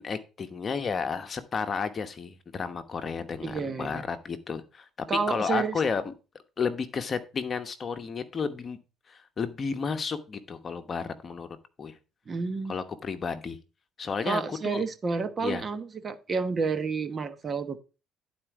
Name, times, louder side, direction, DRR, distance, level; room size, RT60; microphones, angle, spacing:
voice 1, 0.0-6.0 6.6-8.8 9.1-11.5 11.8-12.0 12.7-13.6 14.0-14.8 15.4-15.6, left 5 dB, 40° left, 1.0 m, -32 dB
voice 2, 3.4-4.1 5.1-5.8 12.3-12.7 14.2-17.8, right 5 dB, 35° right, 1.0 m, -30 dB
11.0 x 4.4 x 4.8 m
cardioid pair, 95°, 0 cm